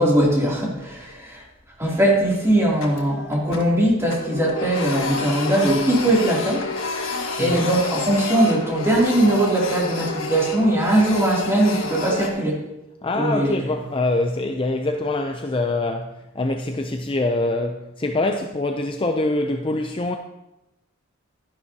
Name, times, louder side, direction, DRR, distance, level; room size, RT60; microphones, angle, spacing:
voice 1, 0.0-1.4 1.8-6.6 7.4-12.6 13.1-13.6, right 1 dB, 15° right, 2.8 m, -20 dB
Printer, 0.7-1.3 1.7-1.8 2.3-3.8 4.1-12.3, left 3 dB, 75° left, 1.5 m, -30 dB
voice 2, 13.0-20.2, left 2 dB, 25° left, 0.5 m, -24 dB
12.5 x 10.5 x 2.8 m
head